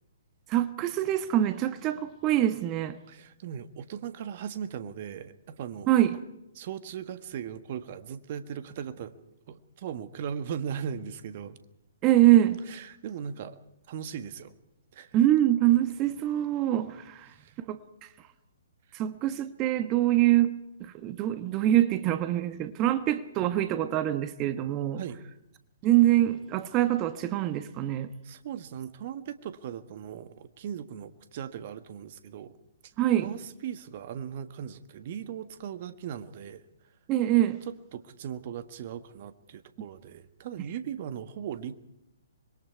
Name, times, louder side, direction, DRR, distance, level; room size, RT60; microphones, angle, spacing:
voice 1, 0.5-3.0 5.9-6.2 12.0-12.6 15.1-17.3 17.7-17.8 18.9-25.0 25.8-28.1 33.0-33.3 37.1-37.6, right 13 dB, 30° right, 1.2 m, -24 dB
voice 2, 3.1-5.9 6.5-9.2 9.5-11.6 12.7-13.6 13.9-14.5 14.9-15.2 17.3-17.5 25.0-25.2 28.2-32.5 32.8-32.9 33.2-36.6 37.9-41.8, right 8 dB, 45° right, 1.5 m, -38 dB
25.5 x 22.0 x 4.7 m
figure-of-eight pair, 125°, 0 cm